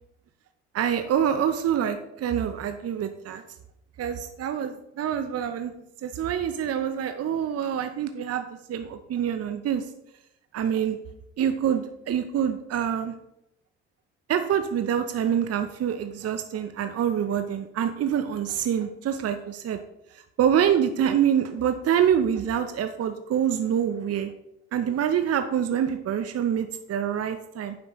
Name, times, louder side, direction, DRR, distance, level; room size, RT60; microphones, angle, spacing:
voice 1, 0.7-3.4 4.0-5.7 6.0-9.9 10.5-11.0 11.4-13.1 14.3-19.8 20.1-24.3 24.7-27.8, right 9 dB, 45° right, 8 dB, 0.8 m, -26 dB
9.5 x 7.6 x 3.1 m, 0.83 s
hypercardioid pair, 50°, 34 cm